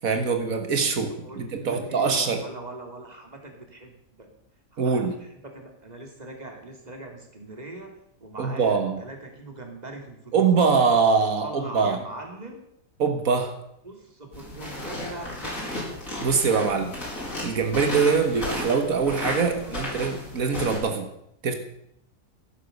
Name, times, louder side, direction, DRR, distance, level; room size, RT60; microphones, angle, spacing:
voice 1, 0.0-2.4 4.8-5.1 8.4-9.0 10.3-12.0 13.0-13.6 16.2-16.9 17.4-21.1 21.4-21.6, right 5 dB, 85° right, 6 dB, 1.9 m, -23 dB
voice 2, 1.2-4.3 4.7-7.9 8.2-10.6 11.4-12.6 13.8-16.0 19.6-19.9, right 2 dB, 30° right, 3 dB, 3.0 m, -41 dB
sound 1, 14.3-20.8, left 1 dB, 75° left, 6.3 m, -34 dB
14.5 x 11.5 x 6.6 m, 0.77 s
omnidirectional pair, 1.4 m